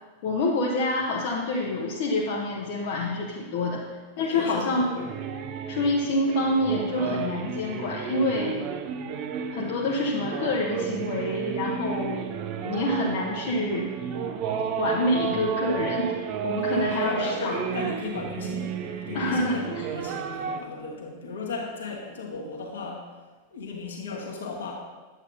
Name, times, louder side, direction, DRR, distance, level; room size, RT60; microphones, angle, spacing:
voice 1, 0.2-3.9 4.2-4.9 5.7-8.7 9.5-12.3 12.6-13.9 14.8-17.6 19.1-19.9, left 2 dB, 50° left, -3 dB, 0.8 m, -27 dB
voice 2, 4.2-5.1 16.6-23.1 23.5-24.7, left 4 dB, 65° left, 0 dB, 1.3 m, -36 dB
sound 1, 5.0-20.6, right 7 dB, 40° right, 0.6 m, -32 dB
9.1 x 7.9 x 2.6 m, 1.3 s
figure-of-eight pair, 90°, 0 cm